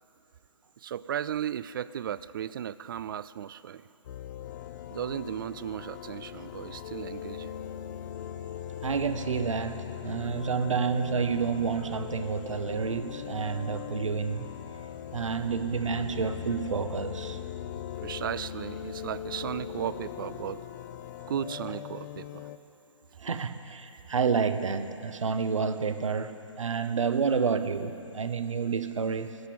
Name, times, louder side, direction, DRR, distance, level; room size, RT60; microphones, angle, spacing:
voice 1, 0.8-3.9 4.9-7.5 18.0-20.6 21.3-22.5, right 9 dB, 40° right, 17 dB, 0.4 m, -35 dB
sound 1, 4.0-22.6, left 10 dB, 35° left, 0.5 m, -40 dB
voice 2, 8.8-14.5 15.1-17.4 23.2-29.4, right 5 dB, 70° right, 11 dB, 0.9 m, -29 dB
14.0 x 8.3 x 9.2 m, 2.9 s
figure-of-eight pair, 135°, 17 cm